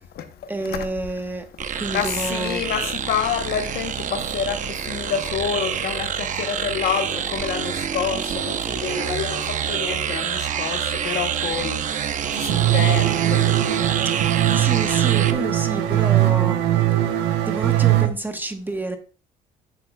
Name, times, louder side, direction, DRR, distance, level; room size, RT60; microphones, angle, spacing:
voice 1, 0.5-1.4 1.7-2.7 14.1-16.6 17.5-19.0, right 2 dB, 10° right, 1.2 m, -29 dB
sound 1, 1.6-15.3, right 8 dB, 50° right, 0.8 m, -27 dB
voice 2, 1.9-13.9, left 8 dB, 65° left, 1.0 m, -28 dB
sound 2, 12.5-18.1, right 14 dB, 90° right, 1.2 m, -20 dB
10.5 x 7.4 x 2.3 m
cardioid pair, 110°, 17 cm